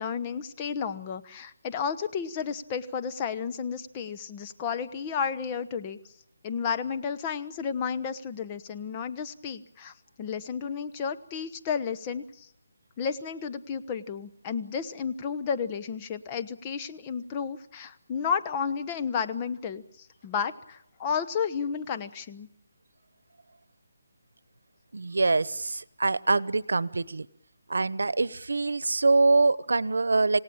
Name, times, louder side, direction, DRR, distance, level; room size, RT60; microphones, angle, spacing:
voice 1, 0.0-6.0 6.4-12.5 13.0-22.5, left 6 dB, 20° left, 7 dB, 1.1 m, -32 dB
voice 2, 24.9-27.3 27.7-30.4, right 3 dB, 85° right, 20 dB, 1.0 m, -24 dB
28.0 x 17.5 x 8.9 m, 0.78 s
hypercardioid pair, 170°, 0 cm